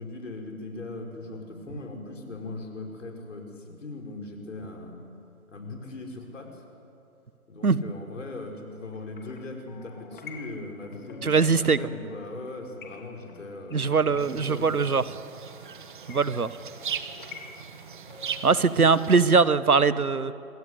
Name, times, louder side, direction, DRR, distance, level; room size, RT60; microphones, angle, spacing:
voice 1, 0.0-5.0 5.5-6.6 7.5-14.9, left 2 dB, 55° left, 2 dB, 5.0 m, -39 dB
sound 1, 8.9-18.7, left 5 dB, 35° left, 2.8 m, -49 dB
voice 2, 11.2-11.8 13.7-15.0 16.1-16.6 18.4-20.3, right 4 dB, 80° right, 16 dB, 1.2 m, -21 dB
sound 2, 14.2-19.3, right 7 dB, 35° right, 1.3 m, -39 dB
27.5 x 22.0 x 8.0 m, 2.6 s
figure-of-eight pair, 145°, 44 cm